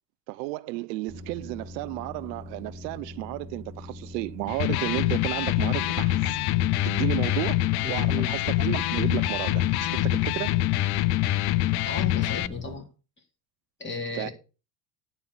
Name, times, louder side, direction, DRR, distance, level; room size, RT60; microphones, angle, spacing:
voice 1, 0.3-6.4 6.8-10.6 14.1-14.3, right 20 dB, 80° right, 0.6 m, -33 dB
sound 1, 1.1-12.7, left 1 dB, 5° right, 2.8 m, -42 dB
Electric guitar, 4.5-12.5, left 15 dB, 50° left, 0.6 m, -25 dB
voice 2, 7.8-8.3 11.9-12.9 13.8-14.3, left 3 dB, 20° left, 3.4 m, -34 dB
9.8 x 4.2 x 6.8 m
supercardioid pair, 95°, 50 cm